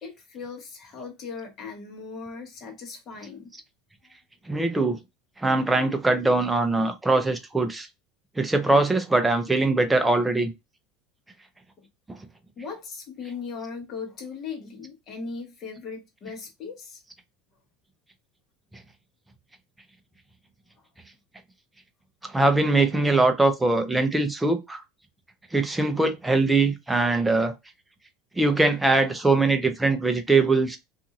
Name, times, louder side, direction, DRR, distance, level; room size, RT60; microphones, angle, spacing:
voice 1, 0.0-3.5 4.0-4.1 11.8-11.9 12.6-17.0, left 5 dB, 35° left, 1.1 m, -38 dB
voice 2, 4.5-5.0 5.4-7.9 8.4-10.5 12.1-12.2 22.3-24.8 25.5-27.5 28.4-30.8, right 2 dB, 5° right, 0.5 m, -22 dB
2.6 x 2.5 x 2.8 m
supercardioid pair, 145°, 0 cm